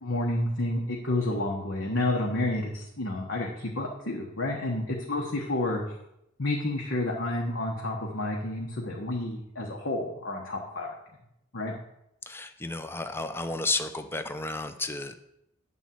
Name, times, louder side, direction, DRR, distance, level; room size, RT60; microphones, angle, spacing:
voice 1, 0.0-5.8 6.4-10.9 11.5-11.7, left 1 dB, 60° left, -2 dB, 1.2 m, -30 dB
voice 2, 12.3-15.2, left 2 dB, 10° left, 9 dB, 0.5 m, -32 dB
9.8 x 4.1 x 7.5 m, 0.82 s
head